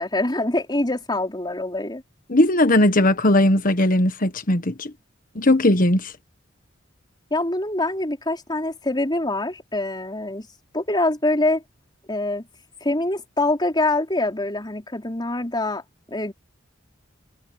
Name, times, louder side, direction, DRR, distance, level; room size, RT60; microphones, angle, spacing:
voice 1, 0.0-2.0 7.3-10.5 10.7-11.6 12.1-12.5 12.8-15.8 16.1-16.3, left 2 dB, 25° left, 4.3 m, -24 dB
voice 2, 2.3-4.9 5.3-6.1, left 1 dB, 45° left, 1.5 m, -18 dB
head